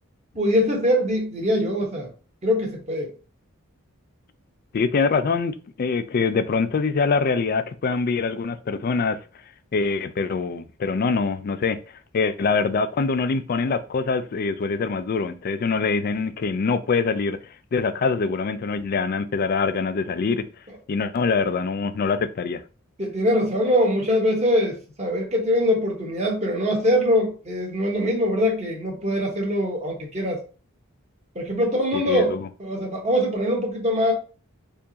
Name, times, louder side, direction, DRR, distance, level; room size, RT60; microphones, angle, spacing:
voice 1, 0.3-2.1 2.4-3.1 23.0-30.4 31.3-32.3 32.6-34.1, equal, 30° right, 1.2 m, -23 dB
voice 2, 4.7-9.2 9.7-11.8 12.1-20.5 20.9-22.6 31.9-32.5, left 4 dB, 45° left, 0.3 m, -24 dB
4.5 x 2.6 x 2.8 m
head